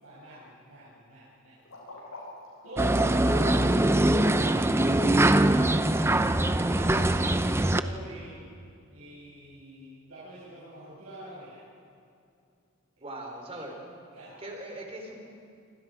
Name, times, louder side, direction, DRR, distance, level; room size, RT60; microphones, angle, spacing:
voice 1, 0.0-1.6 2.0-2.1 2.6-6.9 7.4-8.4 8.9-11.7 14.1-14.4, equal, 90° right, -9 dB, 6.8 m, -47 dB
sound 1, 1.7-5.5, left 2 dB, 75° left, 7.3 m, -42 dB
sound 2, 2.8-7.8, right 1 dB, 10° right, 0.6 m, -23 dB
voice 2, 6.7-7.8 13.0-13.7 14.4-15.2, right 1 dB, 30° right, 1 dB, 4.0 m, -41 dB
26.5 x 26.0 x 5.0 m, 2.4 s
head